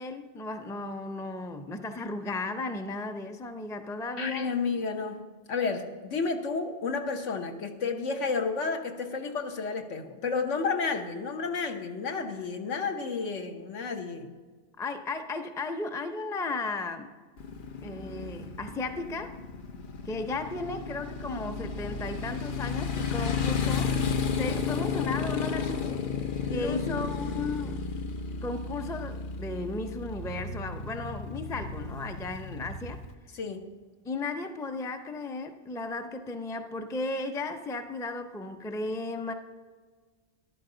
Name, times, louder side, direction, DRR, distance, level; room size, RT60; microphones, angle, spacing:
voice 1, 0.0-4.5 14.8-17.1 17.8-19.4 20.1-26.0 26.5-27.9 28.4-33.0 34.0-39.3, left 3 dB, 5° left, 6 dB, 0.4 m, -35 dB
voice 2, 4.2-5.2 5.5-14.3 26.4-27.2 33.3-33.7, left 4 dB, 75° left, 5 dB, 1.4 m, -31 dB
Motorcycle, 17.4-33.1, left 5 dB, 50° left, 0.8 m, -33 dB
13.5 x 11.5 x 3.9 m, 1.5 s
omnidirectional pair, 1.3 m